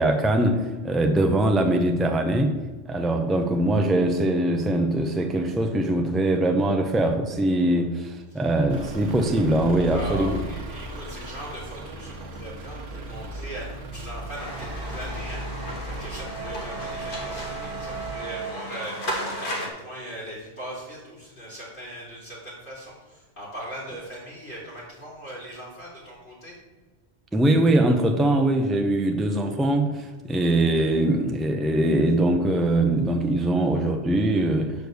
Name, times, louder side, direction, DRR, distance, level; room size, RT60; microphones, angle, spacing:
voice 1, 0.0-2.6 2.8-10.4 27.3-34.7, right 1 dB, ahead, 5 dB, 0.4 m, -22 dB
Truck / Idling, 8.7-18.1, right 1 dB, 85° right, 1.4 m, -37 dB
voice 2, 9.8-26.6, right 1 dB, 65° left, -8 dB, 3.0 m, -39 dB
sound 1, 14.3-19.7, right 1 dB, 45° left, 1.5 m, -34 dB
6.6 x 5.1 x 6.3 m, 1.2 s
omnidirectional pair, 1.2 m